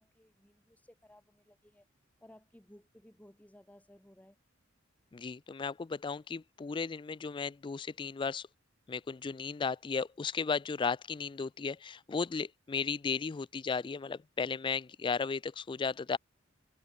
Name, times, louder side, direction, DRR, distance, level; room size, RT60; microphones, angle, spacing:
voice 1, 0.0-1.9 2.2-4.4, left 1 dB, 10° left, 2.2 m, -59 dB
voice 2, 5.1-8.5 8.9-16.2, left 5 dB, 25° left, 0.3 m, -35 dB
head